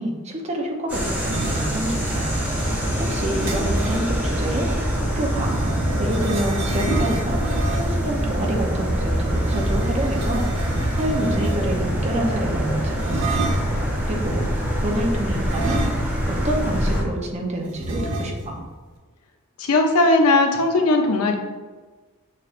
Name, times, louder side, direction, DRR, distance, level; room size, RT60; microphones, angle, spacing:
voice 1, 0.0-2.3 2.6-4.7 5.0-7.4 7.7-13.4 14.1-14.5 14.8-15.9 16.3-18.6, right 1 dB, 30° right, 0 dB, 0.7 m, -28 dB
sound 1, 0.9-17.0, equal, 5° right, 1.0 m, -24 dB
sound 2, 1.2-4.1 4.9-8.1 9.3-11.9 13.0-13.8 15.5-16.4 16.7-16.8 17.8-18.6, right 2 dB, 90° right, 0.7 m, -29 dB
voice 2, 19.6-21.4, left 2 dB, 85° left, 3 dB, 0.7 m, -18 dB
6.7 x 3.2 x 2.5 m, 1.3 s
head